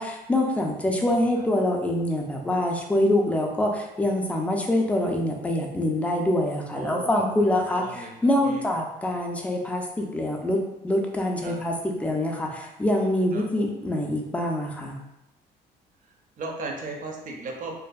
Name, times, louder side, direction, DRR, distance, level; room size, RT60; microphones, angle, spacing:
voice 1, 0.0-7.8 8.2-10.6 10.8-15.0, left 1 dB, 10° left, 1 dB, 0.4 m, -25 dB
voice 2, 1.1-1.4 6.7-7.3 7.8-8.1 8.4-8.7 11.4-11.6 13.3-13.6 16.4-17.7, right 3 dB, 50° right, 1 dB, 0.5 m, -36 dB
2.6 x 2.4 x 2.3 m, 0.90 s
cardioid pair, 110°, 17 cm